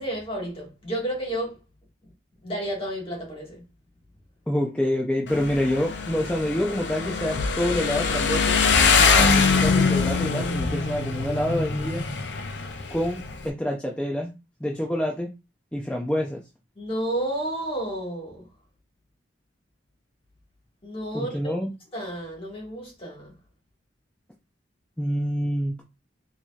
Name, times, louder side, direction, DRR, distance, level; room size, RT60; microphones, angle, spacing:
voice 1, 0.0-1.6 2.4-3.6 16.7-18.5 20.8-21.5 21.9-23.3, right 1 dB, 30° left, 1.6 m, -31 dB
voice 2, 4.5-8.6 9.0-12.0 12.9-14.3 14.6-15.3 15.7-16.4 21.1-21.7 25.0-25.8, left 1 dB, 5° left, 0.4 m, -27 dB
Motorcycle, 5.3-13.5, left 4 dB, 65° left, 0.5 m, -23 dB
4.6 x 2.8 x 2.3 m
head